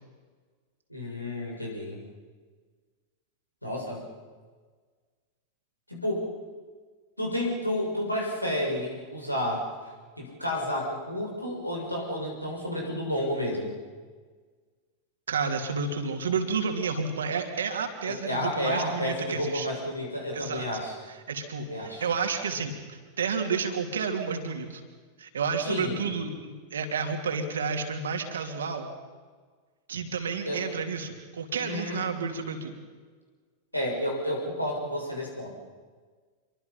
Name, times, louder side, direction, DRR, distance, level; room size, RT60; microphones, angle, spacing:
voice 1, 0.9-2.0 3.6-4.0 5.9-6.3 7.2-9.7 10.2-13.8 18.0-21.0 21.6-22.1 25.6-26.0 30.5-30.6 31.6-32.0 33.7-35.5, left 1 dB, 85° left, -1 dB, 6.5 m, -31 dB
voice 2, 15.3-19.7 20.3-20.7 21.3-24.8 25.2-28.9 29.9-32.8, right 5 dB, 65° right, 5 dB, 3.1 m, -31 dB
27.5 x 23.5 x 5.8 m, 1.5 s
figure-of-eight pair, 90°, 0 cm